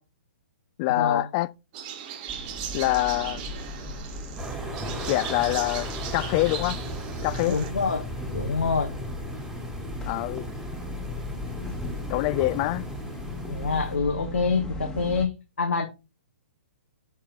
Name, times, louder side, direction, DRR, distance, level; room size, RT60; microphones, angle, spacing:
voice 1, 0.8-1.5 2.7-3.4 5.0-6.8 7.2-7.6 10.1-10.5 12.1-12.9, left 20 dB, 35° left, 0.4 m, -25 dB
sound 1, 1.7-7.7, right 9 dB, 35° right, 1.2 m, -38 dB
sound 2, 2.3-15.3, left 2 dB, 10° left, 1.5 m, -37 dB
sound 3, 4.4-14.0, equal, 10° right, 2.0 m, -36 dB
voice 2, 7.5-8.1 8.3-8.9 13.5-15.9, left 5 dB, 90° left, 1.2 m, -26 dB
7.3 x 4.5 x 3.7 m
hypercardioid pair, 130°, 7 cm